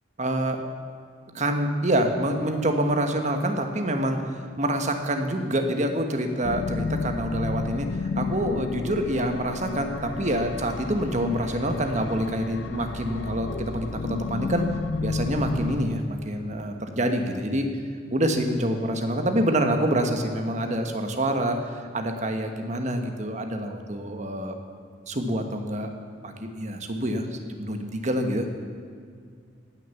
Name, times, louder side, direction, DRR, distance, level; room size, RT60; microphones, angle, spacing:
voice 1, 0.2-0.6 1.3-7.9 8.2-14.7 15.0-17.7 18.1-24.5 25.1-25.9 26.2-28.5, right 1 dB, 40° right, 5 dB, 1.3 m, -26 dB
sound 1, 6.4-15.8, left 4 dB, 85° left, 0.6 m, -32 dB
18.5 x 6.6 x 7.2 m, 2.2 s
head